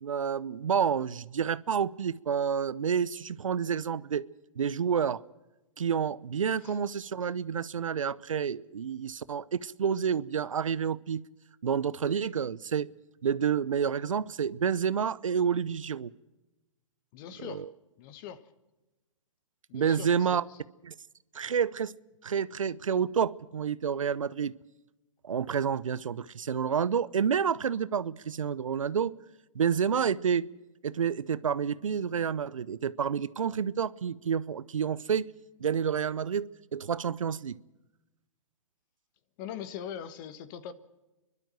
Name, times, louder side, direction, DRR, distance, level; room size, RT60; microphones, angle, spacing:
voice 1, 0.0-4.3 4.6-5.2 5.8-11.2 11.6-12.9 13.2-16.1 17.4-17.7 19.7-20.4 20.8-20.9 21.3-21.9 22.2-24.5 25.2-29.1 29.5-30.4 30.8-35.3 35.6-36.5 36.7-37.6, right 7 dB, 90° right, 0.7 m, -29 dB
voice 2, 17.1-17.7 18.0-18.5 19.7-20.6 39.4-40.7, left 9 dB, 40° left, 1.5 m, -42 dB
30.0 x 12.0 x 7.6 m
hypercardioid pair, 135°, 16 cm